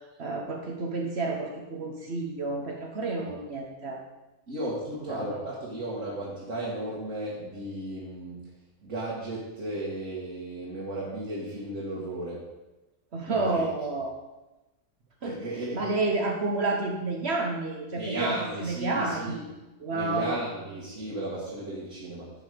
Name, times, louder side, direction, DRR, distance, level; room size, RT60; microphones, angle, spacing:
voice 1, 0.2-4.0 5.1-5.3 13.1-14.1 15.2-15.4 15.7-19.4 19.8-20.4, right 3 dB, 55° right, 1 dB, 1.3 m, -30 dB
voice 2, 4.5-8.5 8.8-12.5 13.3-13.7 15.2-15.9 17.9-19.5 19.9-22.3, right 1 dB, 85° right, -7 dB, 2.2 m, -34 dB
11.0 x 5.5 x 5.1 m, 1.0 s
omnidirectional pair, 1.3 m